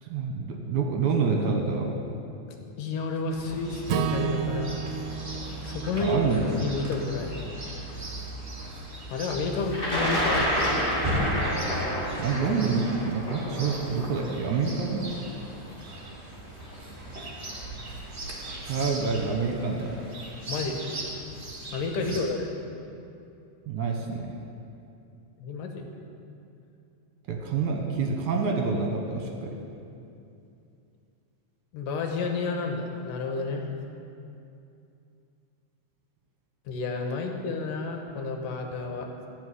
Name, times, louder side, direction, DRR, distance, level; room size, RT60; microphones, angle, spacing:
voice 1, 0.0-2.0 5.9-6.5 12.2-15.1 18.7-19.9 22.1-22.2 23.7-24.3 27.3-29.6, right 5 dB, 65° right, 1 dB, 2.3 m, -27 dB
voice 2, 2.8-4.8 5.6-6.2 6.6-7.3 9.1-10.5 20.5-20.9 21.7-22.5 25.4-25.9 31.7-33.7 36.7-39.1, left 3 dB, 75° left, 3 dB, 2.6 m, -30 dB
Chirp tweet, 3.3-22.2, equal, 25° right, 1.5 m, -38 dB
Acoustic guitar / Strum, 3.9-8.2, right 9 dB, 85° right, 2.2 m, -33 dB
Thunder, 9.7-15.7 16.7-16.8 17.9-18.1 18.4-18.9, equal, 20° left, 2.1 m, -29 dB
14.5 x 5.4 x 9.4 m, 2.6 s
omnidirectional pair, 4.0 m